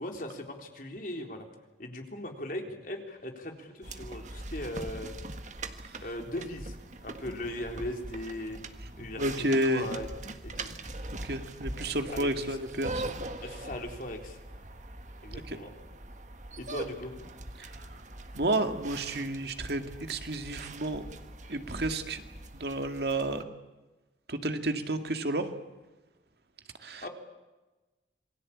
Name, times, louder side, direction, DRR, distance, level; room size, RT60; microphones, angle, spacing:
voice 1, 0.0-1.5 1.8-5.1 6.0-6.7 7.0-8.6 9.0-10.1 10.4-10.7 12.1-12.6 13.4-14.4 15.2-15.7 16.6-17.1 27.0-27.1, left 1 dB, 50° left, 3 dB, 3.8 m, -38 dB
sound 1, 3.8-23.4, right 2 dB, 40° right, 1.6 m, -42 dB
voice 2, 9.2-9.9 11.2-13.1 15.5-15.6 17.6-17.8 18.3-21.1 21.5-22.2 22.5-23.4 24.3-25.5 26.8-27.1, right 1 dB, 60° right, 7 dB, 2.1 m, -31 dB
27.5 x 21.0 x 8.7 m, 1.2 s
head